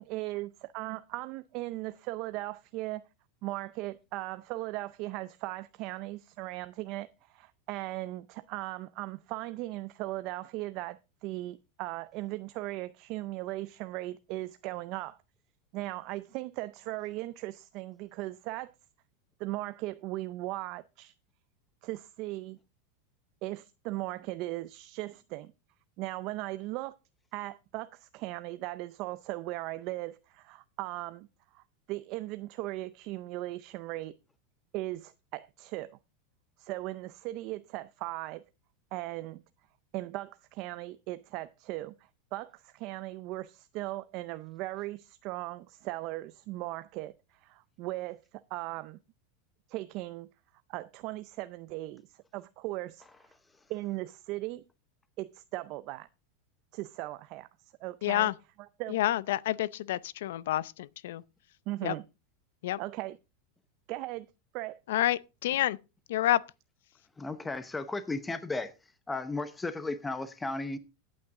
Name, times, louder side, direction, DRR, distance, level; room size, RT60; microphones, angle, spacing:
voice 1, 0.0-3.0 3.4-15.2 15.7-18.7 19.4-21.1 21.8-22.6 23.4-25.5 26.0-27.0 27.3-31.3 31.5-31.6 31.9-34.2 34.7-36.0 36.6-38.4 38.9-39.4 39.9-41.9 42.3-48.2 48.5-49.0 49.7-50.3 50.7-52.0 52.3-53.1 53.7-54.6 55.2-56.1 56.7-57.5 57.8-58.3 58.8-59.0 61.7-62.0 62.8-63.2 63.9-64.3 64.5-64.8, right 18 dB, 40° right, 0.5 m, -38 dB
voice 2, 58.0-58.3 58.9-61.2 61.8-61.9 62.6-62.8 64.9-65.8 66.1-66.4, left 14 dB, 75° left, 0.6 m, -28 dB
voice 3, 67.2-68.7 69.1-70.8, left 3 dB, 10° left, 0.7 m, -34 dB
15.0 x 8.7 x 3.7 m
supercardioid pair, 165°, 0 cm